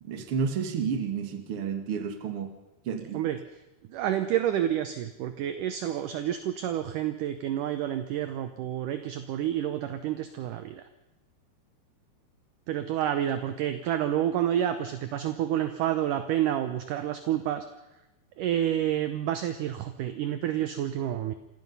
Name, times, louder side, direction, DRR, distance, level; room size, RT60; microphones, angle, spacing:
voice 1, 0.0-2.6 2.8-3.3, right 6 dB, 45° right, 7 dB, 2.0 m, -31 dB
voice 2, 3.9-10.8 12.7-17.7 18.4-21.3, right 11 dB, 75° right, 9 dB, 2.0 m, -29 dB
26.5 x 17.5 x 5.5 m, 0.97 s
omnidirectional pair, 4.7 m